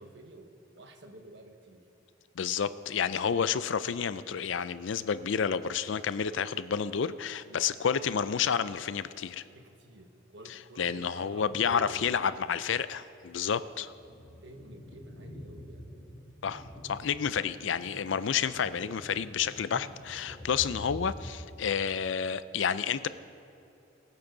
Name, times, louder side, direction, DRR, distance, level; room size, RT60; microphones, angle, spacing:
voice 1, 0.0-1.9 7.4-7.6 9.5-12.4 13.8-13.9 14.4-15.9 19.4-19.6 21.6-21.7, right 2 dB, 65° right, 5 dB, 1.3 m, -50 dB
voice 2, 2.4-9.4 10.8-13.9 16.4-23.1, left 7 dB, 70° left, 15 dB, 0.4 m, -30 dB
sound 1, 11.3-12.2 12.7-12.8 13.4-21.3, equal, 25° left, 2.4 m, -47 dB
22.0 x 8.7 x 3.9 m, 2.8 s
head